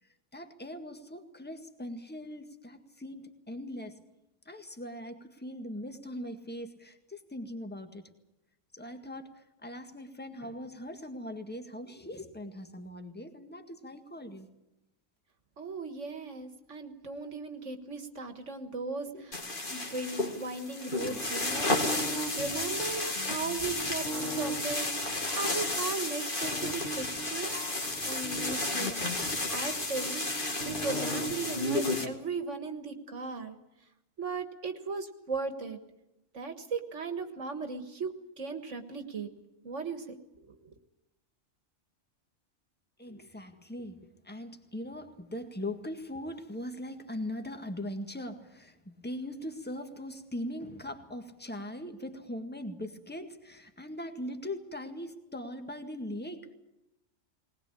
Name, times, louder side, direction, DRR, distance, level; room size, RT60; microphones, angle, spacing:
voice 1, 0.3-4.0 4.5-8.1 8.7-14.5 19.1-19.3 43.0-56.5, left 1 dB, 10° left, 6 dB, 1.8 m, -40 dB
voice 2, 15.6-19.1 19.7-27.6 28.1-30.2 30.7-33.6 34.2-35.8 36.3-39.3 39.6-40.0 40.5-40.7, right 4 dB, 65° right, 7 dB, 1.9 m, -37 dB
sound 1, 19.3-32.1, left 2 dB, 40° left, 2.6 m, -32 dB
sound 2, 21.0-25.7 26.4-31.3, equal, 60° left, 2.4 m, -39 dB
20.5 x 20.0 x 8.5 m, 0.91 s
omnidirectional pair, 1.4 m